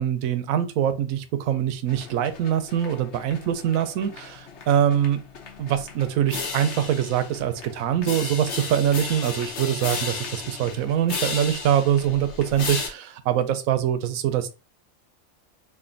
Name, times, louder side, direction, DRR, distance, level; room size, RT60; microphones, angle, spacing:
voice 1, 0.0-5.2 5.6-14.5, right 10 dB, 85° right, 1.0 m, -24 dB
sound 1, 1.9-12.9, left 4 dB, 60° left, 1.1 m, -35 dB
3.2 x 2.5 x 3.8 m
omnidirectional pair, 1.4 m